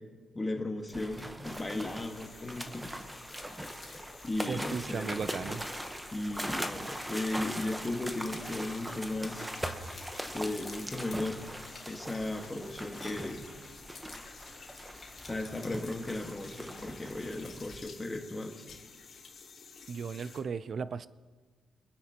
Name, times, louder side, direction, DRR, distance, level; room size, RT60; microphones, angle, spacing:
voice 1, 0.3-3.3 4.2-5.3 6.1-9.5 10.3-11.5 11.9-13.5 15.2-18.6, left 2 dB, 20° left, 2 dB, 1.6 m, -36 dB
sound 1, 0.8-1.3 1.6-1.7 2.1-9.5 9.9-17.8, left 4 dB, 35° left, 2.5 m, -57 dB
sound 2, 0.9-17.8, equal, 10° right, 1.1 m, -41 dB
sound 3, 1.4-20.4, left 5 dB, 55° left, 2.9 m, -53 dB
voice 2, 4.5-5.6 19.9-21.1, right 6 dB, 50° right, 16 dB, 0.4 m, -36 dB
25.0 x 9.8 x 2.9 m, 1.4 s
cardioid pair, 90°, 0 cm